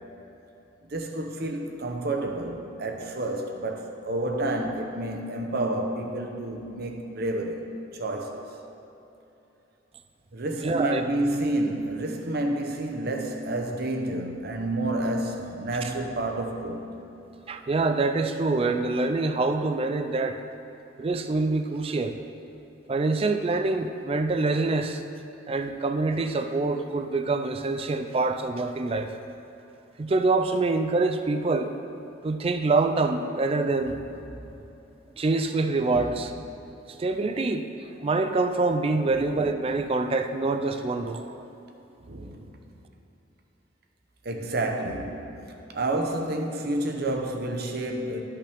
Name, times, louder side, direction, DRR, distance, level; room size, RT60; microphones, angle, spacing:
voice 1, 0.9-7.7 7.9-8.5 10.3-16.9 33.8-34.0 34.3-34.6 35.9-36.3 39.0-39.3 42.1-42.6 44.2-48.2, right 1 dB, 50° right, 3 dB, 0.8 m, -30 dB
voice 2, 10.5-11.1 17.5-20.4 21.0-22.2 22.9-25.0 25.5-29.1 30.0-31.7 32.2-34.0 35.2-36.3 37.0-41.4, right 3 dB, 30° right, 7 dB, 0.4 m, -25 dB
12.0 x 5.7 x 3.4 m, 3.0 s
head